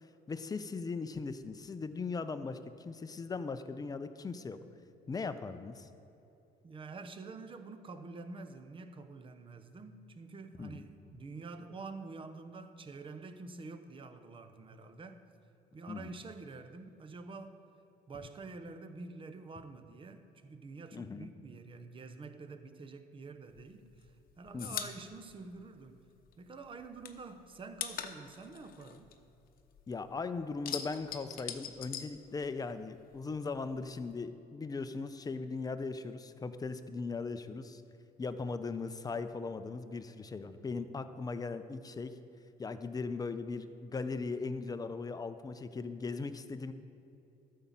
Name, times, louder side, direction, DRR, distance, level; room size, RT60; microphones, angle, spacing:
voice 1, 0.3-4.6 5.1-5.9 10.6-10.8 15.9-16.2 20.9-21.3 24.5-24.8 29.9-37.8 38.2-42.1 42.6-46.7, left 4 dB, 20° left, 10 dB, 0.6 m, -39 dB
voice 2, 6.6-15.2 15.7-17.6 18.1-26.0 26.4-29.1, right 3 dB, 30° right, 9 dB, 0.8 m, -47 dB
sound 1, 23.5-26.3 26.6-29.9 30.2-32.8 33.1-34.2, left 9 dB, 60° left, 0.8 m, -42 dB
12.5 x 5.6 x 7.4 m, 2.8 s
cardioid pair, 110°, 17 cm